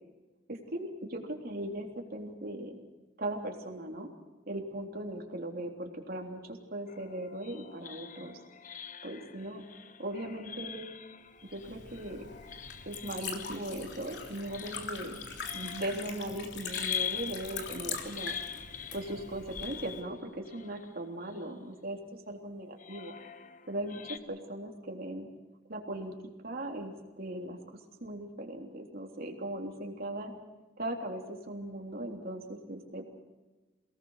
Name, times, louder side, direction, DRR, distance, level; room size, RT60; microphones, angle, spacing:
voice 1, 0.5-2.8 3.2-4.1 4.5-8.4 9.0-10.9 11.5-12.3 12.8-15.2 15.5-18.4 18.9-23.1 23.7-25.3 25.7-26.1 26.4-27.6 28.0-30.3 30.8-33.1, right 1 dB, 50° right, 2 dB, 3.5 m, -39 dB
sound 1, 6.9-21.8 22.8-24.2, left 8 dB, 45° left, 1.0 m, -44 dB
Liquid, 11.5-20.0, left 5 dB, 65° left, 3.3 m, -42 dB
28.0 x 19.0 x 6.6 m, 1.2 s
head